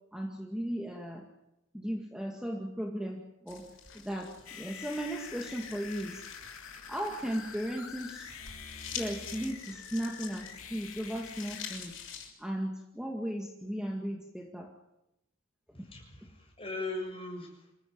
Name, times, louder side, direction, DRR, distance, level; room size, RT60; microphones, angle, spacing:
voice 1, 0.1-1.2 1.7-3.7 4.0-6.2 6.9-8.4 8.6-12.0 12.4-14.7 15.8-15.9, equal, 5° right, 0 dB, 2.1 m, -36 dB
sound 1, 3.5-12.3, left 7 dB, 65° left, 6.6 m, -47 dB
sound 2, 4.5-11.8, left 6 dB, 85° left, 3.0 m, -46 dB
voice 2, 15.7-17.7, left 2 dB, 25° left, 1 dB, 7.2 m, -39 dB
27.0 x 15.5 x 9.5 m, 0.88 s
head